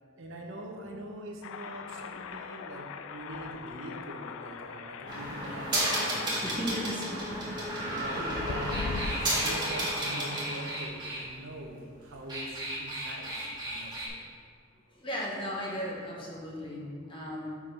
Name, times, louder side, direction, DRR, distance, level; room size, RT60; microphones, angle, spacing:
voice 1, 0.1-6.9 7.7-8.8 9.1-13.4 13.7-14.2, right 1 dB, 75° right, 1 dB, 1.0 m, -43 dB
sound 1, 1.4-9.2, left 5 dB, 85° left, 0.3 m, -41 dB
sound 2, 5.1-11.2 12.1-14.1, right 1 dB, 25° right, 1.6 m, -32 dB
voice 2, 6.4-8.3 14.9-17.5, equal, 25° left, -4 dB, 1.2 m, -37 dB
5.7 x 4.8 x 5.5 m, 2.2 s
head